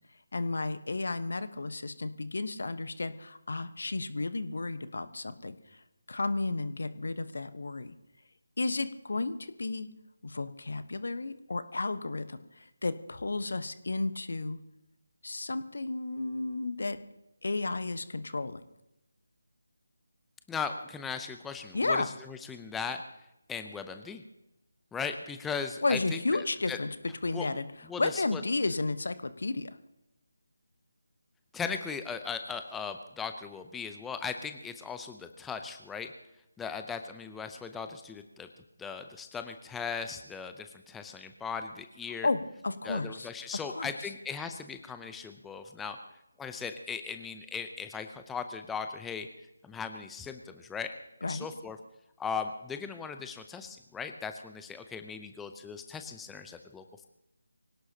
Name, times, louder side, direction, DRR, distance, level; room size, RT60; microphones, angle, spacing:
voice 1, 0.3-5.5 6.1-7.9 8.6-9.9 10.2-14.6 15.2-17.0 17.4-18.6 21.7-22.1 25.8-26.9 27.2-27.6 28.0-29.7 42.2-43.3 43.7-43.9 51.2-51.5, left 3 dB, 60° left, 12 dB, 1.1 m, -32 dB
voice 2, 20.5-23.0 23.5-24.2 24.9-26.8 27.3-27.6 27.9-28.4 31.5-36.1 36.6-38.5 38.8-42.3 42.8-46.0 46.4-49.3 49.6-50.9 51.2-51.8 52.2-57.0, left 6 dB, 5° left, 7 dB, 0.7 m, -38 dB
24.5 x 17.5 x 2.9 m, 0.88 s
figure-of-eight pair, 155°, 0 cm